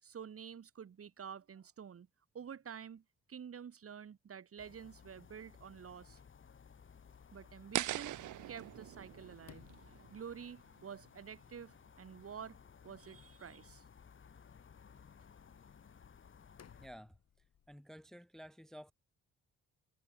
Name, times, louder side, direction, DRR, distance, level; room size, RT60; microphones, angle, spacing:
voice 1, 0.0-2.1 2.3-6.2 7.3-8.2 8.5-9.6 10.1-12.6 12.8-13.8, right 7 dB, 50° right, 3.9 m, -49 dB
sound 1, 4.6-16.9, left 6 dB, 40° left, 3.1 m, -59 dB
Sliding door, 6.2-17.8, left 8 dB, 55° left, 6.9 m, -66 dB
sound 2, 7.7-10.8, right 14 dB, 75° right, 1.3 m, -41 dB
voice 2, 16.8-17.2 17.7-18.9, equal, ahead, 0.8 m, -52 dB
cardioid pair, 90°, 30 cm